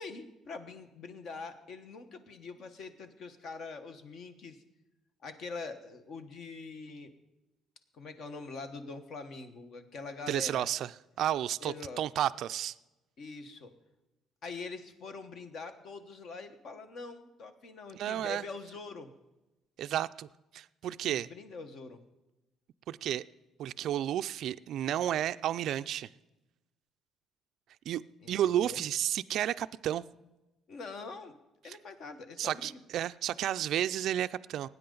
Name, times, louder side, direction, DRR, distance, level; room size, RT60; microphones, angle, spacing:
voice 1, 0.0-4.6 5.2-7.1 7.9-10.7 11.6-12.0 13.2-13.7 14.4-19.1 21.0-22.0 28.2-28.3 28.6-28.8 30.7-31.3 31.6-32.8, left 4 dB, 50° left, 1.2 m, -44 dB
voice 2, 10.3-10.9 11.2-12.7 17.9-18.4 19.8-20.3 20.5-21.3 22.9-23.2 23.6-26.1 27.9-28.0 28.3-30.0 31.7-31.8 32.4-34.7, right 11 dB, 60° right, 0.3 m, -32 dB
18.5 x 9.4 x 3.9 m
cardioid pair, 150°, 0 cm